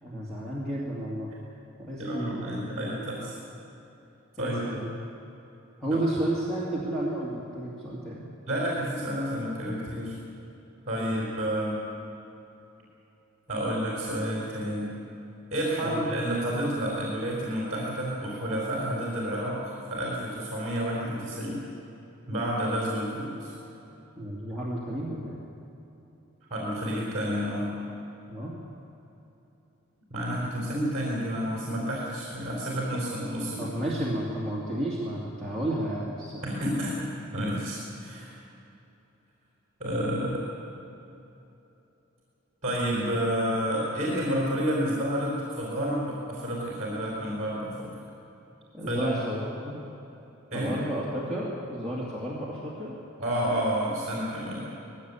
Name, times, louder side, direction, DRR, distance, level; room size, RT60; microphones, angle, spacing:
voice 1, 0.0-1.3 1.8-2.5 4.4-4.9 5.8-8.3 11.0-11.2 15.8-16.0 24.2-25.4 28.3-28.5 33.6-36.5 48.7-49.8 50.5-52.9, right 1 dB, 5° left, -7 dB, 2.4 m, -32 dB
voice 2, 2.0-3.4 4.4-4.6 8.5-10.1 10.9-11.8 13.5-14.9 15.5-21.6 22.3-23.5 26.5-27.7 30.1-33.8 36.4-38.3 39.8-40.4 42.6-48.0 48.9-49.3 50.5-50.8 53.2-54.7, equal, 30° right, -5 dB, 4.0 m, -30 dB
19.5 x 16.0 x 8.4 m, 2.9 s
head